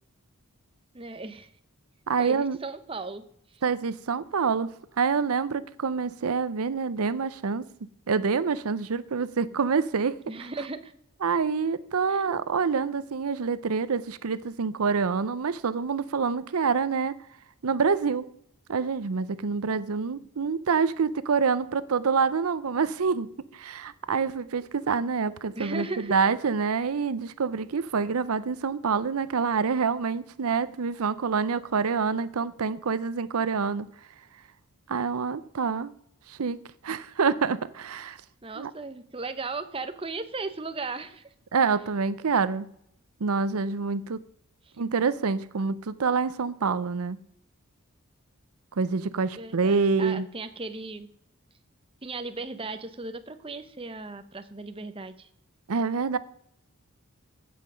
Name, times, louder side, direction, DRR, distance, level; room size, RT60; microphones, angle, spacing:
voice 1, 0.9-1.5 2.2-3.2 3.5-3.6 10.3-10.9 12.1-12.2 25.6-26.1 38.4-41.3 49.4-51.1 52.0-55.3, right 3 dB, 25° right, 0.8 m, -36 dB
voice 2, 2.1-2.6 3.6-7.6 8.1-10.1 11.2-17.2 17.6-18.3 18.7-33.9 34.9-35.9 36.3-36.6 36.8-38.2 38.6-38.7 41.5-42.7 43.2-44.2 44.8-47.2 48.8-50.3 55.7-56.2, right 5 dB, 80° right, 0.6 m, -26 dB
15.5 x 5.8 x 6.2 m
head